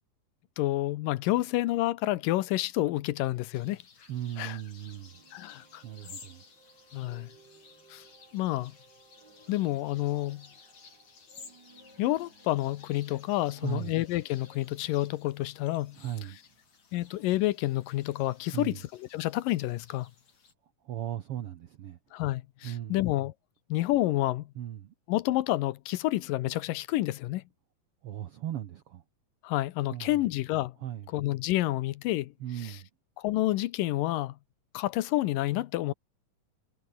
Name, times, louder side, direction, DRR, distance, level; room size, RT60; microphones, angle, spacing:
voice 1, 0.6-3.8 4.4-4.6 5.3-5.8 6.9-7.3 7.9-8.0 8.3-8.7 9.5-10.5 12.0-16.0 16.9-20.1 22.1-23.3 23.7-24.5 25.1-27.4 29.4-30.8 31.1-32.3 32.6-32.8 33.2-34.4 34.7-35.9, left 16 dB, 80° left, 2.5 m, -29 dB
sound 1, 3.5-20.5, left 5 dB, 55° left, 5.3 m, -55 dB
voice 2, 4.1-5.2 5.8-6.4 13.6-13.9 15.9-16.4 18.5-18.8 20.8-22.0 22.6-23.0 24.5-24.9 28.0-29.0 29.9-30.2 30.8-31.1 32.4-32.9, right 11 dB, 70° right, 1.4 m, -37 dB
sound 2, 4.8-16.0, right 5 dB, 35° right, 2.9 m, -61 dB
omnidirectional pair, 4.0 m